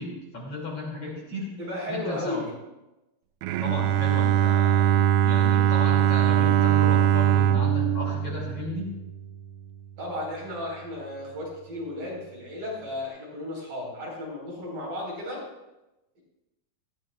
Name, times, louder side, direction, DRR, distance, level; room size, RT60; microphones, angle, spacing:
voice 1, 0.0-1.5 1.9-2.5 3.6-8.9, left 1 dB, 40° left, -3 dB, 3.3 m, -35 dB
voice 2, 1.6-2.5 10.0-15.4 16.2-16.3, left 1 dB, 60° right, -3 dB, 6.0 m, -34 dB
Bowed string instrument, 3.4-9.4, right 10 dB, 85° right, 2.4 m, -22 dB
18.5 x 15.5 x 2.4 m, 0.98 s
omnidirectional pair, 4.3 m